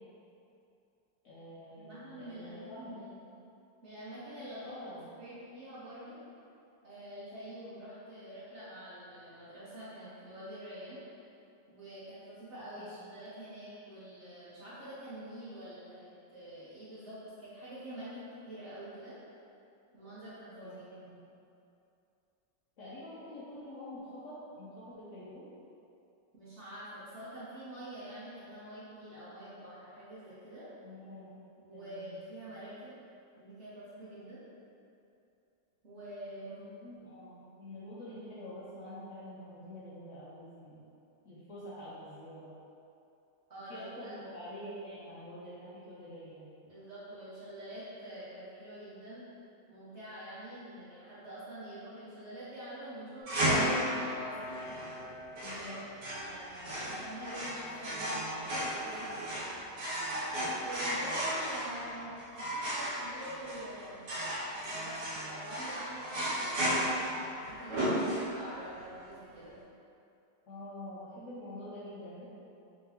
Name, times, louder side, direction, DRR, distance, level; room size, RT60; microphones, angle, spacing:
voice 1, 1.2-3.0 4.6-5.1 12.8-13.1 20.6-21.2 22.8-25.5 30.8-31.4 31.7-32.1 36.8-40.8 41.2-42.5 43.7-46.5 55.4-55.8 70.5-72.3, left 1 dB, 65° left, -9 dB, 0.8 m, -46 dB
voice 2, 1.7-3.3 3.8-4.9 5.2-6.2 6.8-11.0 11.7-19.2 19.9-20.8 26.3-30.7 31.6-33.0 33.4-34.4 35.8-36.7 43.5-44.5 46.6-49.2 49.7-54.8 55.5-59.4 60.6-64.1 64.6-69.6, right 1 dB, 50° right, -11 dB, 0.9 m, -46 dB
sound 1, 53.3-68.6, equal, 75° right, 1.4 m, -34 dB
3.7 x 3.5 x 2.8 m, 2.7 s
omnidirectional pair, 1.9 m